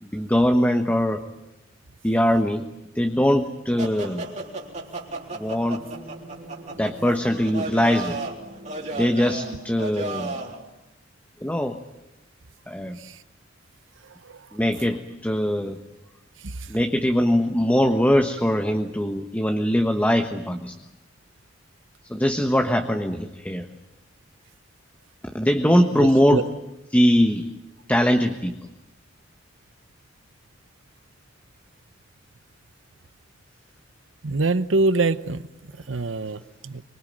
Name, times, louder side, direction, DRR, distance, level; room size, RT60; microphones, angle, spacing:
voice 1, 0.0-1.2 2.0-2.6 2.9-4.3 5.3-5.9 6.8-8.1 8.9-10.3 11.4-11.8 12.7-13.0 14.5-15.8 16.7-20.7 22.1-23.7 25.3-26.5 26.9-27.4 27.9-28.5, equal, 10° left, 5 dB, 1.3 m, -21 dB
sound 1, 3.8-10.6, right 2 dB, 40° right, 3.8 m, -34 dB
voice 2, 26.0-26.4 34.2-35.4 35.9-36.8, right 3 dB, 80° right, 14 dB, 1.0 m, -24 dB
25.0 x 23.5 x 8.9 m, 0.92 s
head